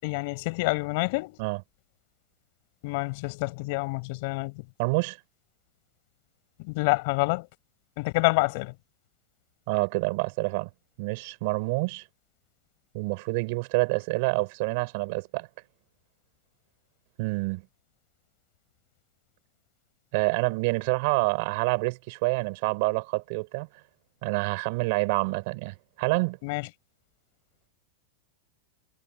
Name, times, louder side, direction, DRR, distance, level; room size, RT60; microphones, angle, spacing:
voice 1, 0.0-1.4 2.8-4.7 6.6-7.5 8.0-8.7 26.4-26.7, left 27 dB, 50° left, 6.3 m, -27 dB
voice 2, 4.8-5.2 9.7-10.7 11.0-12.0 12.9-15.5 17.2-17.6 20.1-23.7 24.2-26.4, right 28 dB, 50° right, 6.1 m, -27 dB
supercardioid pair, 160°, 0 cm